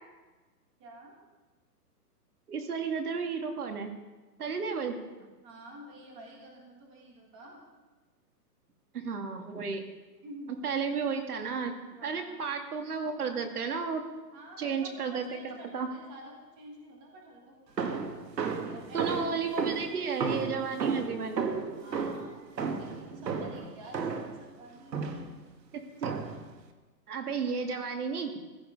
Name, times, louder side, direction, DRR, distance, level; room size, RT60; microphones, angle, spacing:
voice 1, 0.8-1.2 5.4-7.6 10.2-10.6 11.9-12.4 14.3-18.2 18.7-19.6 21.8-25.2, right 1 dB, 15° right, 0 dB, 1.9 m, -49 dB
voice 2, 2.5-3.9 4.4-4.9 8.9-9.8 10.6-11.7 12.0-14.0 14.6-15.9 18.9-21.4 26.0-26.1 27.1-28.3, right 5 dB, 65° right, 5 dB, 2.2 m, -32 dB
sound 1, 17.8-24.4 24.9-25.4 26.0-26.5, right 5 dB, 85° right, 2.1 m, -33 dB
15.5 x 14.0 x 5.3 m, 1.2 s
hypercardioid pair, 175°, 48 cm